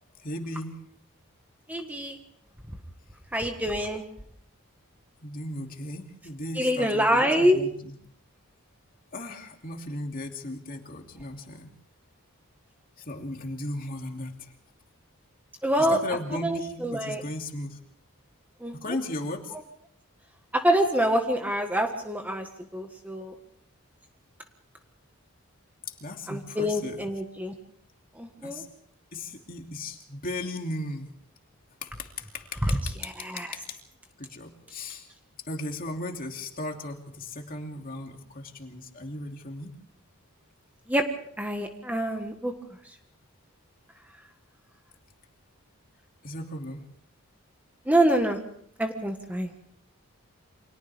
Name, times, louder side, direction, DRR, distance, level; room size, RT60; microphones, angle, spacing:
voice 1, 0.2-0.8 5.2-8.0 9.1-11.7 13.1-14.5 15.8-17.8 18.7-19.5 25.9-27.1 28.4-28.7 29.1-31.1 31.8-33.8 34.2-35.1 35.5-39.7 46.2-46.8, left 1 dB, 40° left, 2 dB, 2.8 m, -36 dB
voice 2, 1.7-2.2 3.3-4.0 6.5-7.6 15.6-16.0 16.4-17.2 18.6-18.7 20.5-22.5 22.7-23.3 26.3-27.5 28.2-28.6 32.7-32.8 33.0-33.5 40.9-41.0 41.4-42.5 47.9-48.4 48.8-49.5, equal, 5° right, 4 dB, 1.5 m, -25 dB
30.0 x 25.5 x 3.5 m, 0.66 s
head